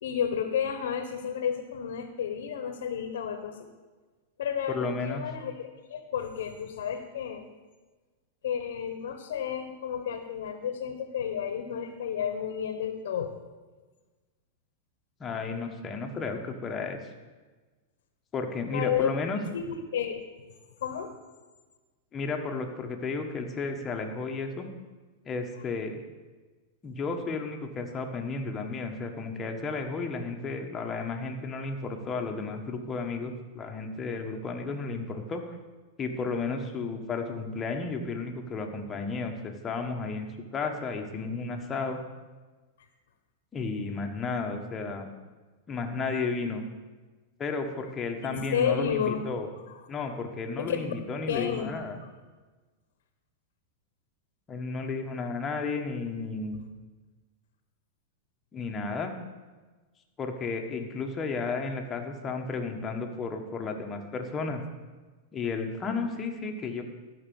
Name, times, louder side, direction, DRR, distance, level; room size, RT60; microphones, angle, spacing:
voice 1, 0.0-3.7 4.4-7.5 8.4-13.3 18.7-19.1 19.5-20.2 20.8-21.1 48.2-49.3 50.6-50.9 51.3-51.7, left 8 dB, 80° left, 7 dB, 1.2 m, -31 dB
voice 2, 4.7-5.2 15.2-17.0 18.3-19.4 22.1-24.7 25.2-26.0 26.8-35.6 36.0-42.0 43.5-45.1 45.7-46.6 47.4-49.5 49.9-52.0 54.5-56.6 58.5-59.1 60.2-64.6 65.3-66.8, left 4 dB, 20° left, 3 dB, 1.4 m, -33 dB
12.5 x 5.9 x 7.1 m, 1.3 s
supercardioid pair, 135°, 0 cm